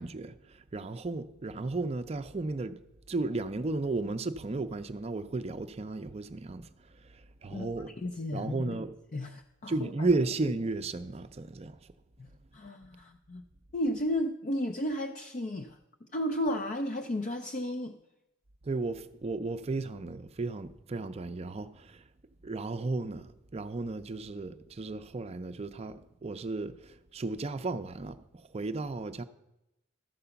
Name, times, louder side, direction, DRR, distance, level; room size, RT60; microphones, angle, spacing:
voice 1, 0.0-2.8 3.1-7.9 8.3-8.9 9.7-11.9 18.6-22.0 22.4-29.2, right 3 dB, 30° right, 0.5 m, -34 dB
voice 2, 8.0-8.8 9.1-10.1 12.2-13.4 13.7-15.8 16.1-18.0, left 1 dB, 40° left, 0.5 m, -33 dB
13.0 x 4.8 x 6.9 m
head